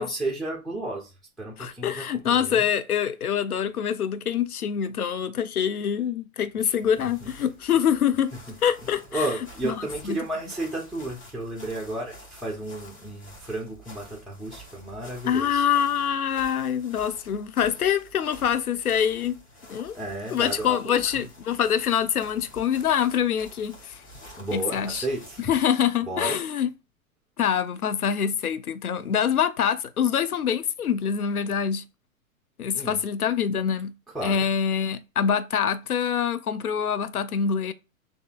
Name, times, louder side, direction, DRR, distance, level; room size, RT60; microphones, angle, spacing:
voice 1, 0.0-2.7 6.6-7.1 9.1-15.6 19.9-21.3 24.2-25.4 26.0-26.4 32.7-33.0 34.1-34.4, right 2 dB, ahead, 0.8 m, -33 dB
voice 2, 1.6-8.3 8.6-9.3 9.6-10.2 15.2-19.4 19.7-20.0 20.3-24.0 24.5-25.1 25.5-26.7 27.4-31.8 32.6-33.9 34.2-37.7, left 8 dB, 85° left, 0.6 m, -25 dB
sound 1, 6.5-25.6, equal, 20° left, 1.5 m, -49 dB
6.6 x 2.7 x 2.4 m
figure-of-eight pair, 105°, 43 cm